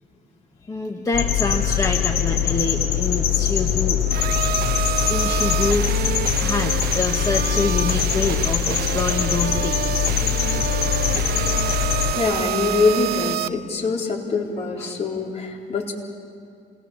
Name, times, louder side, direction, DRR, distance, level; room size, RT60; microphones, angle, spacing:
voice 1, 0.7-4.0 5.1-6.0 6.4-10.1 10.6-10.7 14.8-15.0, left 3 dB, 20° left, 2 dB, 1.4 m, -26 dB
sound 1, 1.1-12.1, left 10 dB, 70° left, 4.1 m, -22 dB
sound 2, 4.1-13.5, right 12 dB, 65° right, 0.7 m, -27 dB
voice 2, 12.1-15.9, left 4 dB, 40° left, -1 dB, 3.9 m, -24 dB
27.5 x 20.5 x 7.1 m, 2.4 s
cardioid pair, 110°, 17 cm